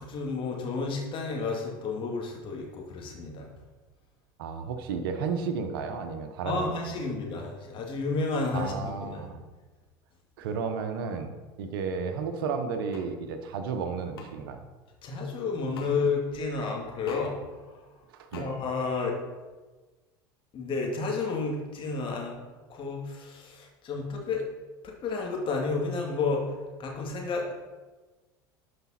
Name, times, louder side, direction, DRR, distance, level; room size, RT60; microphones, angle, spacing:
voice 1, 0.0-3.5 6.4-9.3 15.0-17.4 18.3-19.2 20.5-22.4 22.7-24.4 24.8-26.5 26.8-27.5, left 4 dB, 45° left, 0 dB, 2.4 m, -31 dB
voice 2, 4.4-7.0 8.5-9.5 10.4-14.7 18.1-18.5, right 5 dB, 75° right, 7 dB, 1.0 m, -33 dB
sound 1, 12.9-13.1 14.2-14.3 15.7-15.9 17.1-17.3 18.3-18.5, left 4 dB, 90° left, 1.2 m, -43 dB
12.0 x 5.2 x 4.3 m, 1.3 s
hypercardioid pair, 85°, 12 cm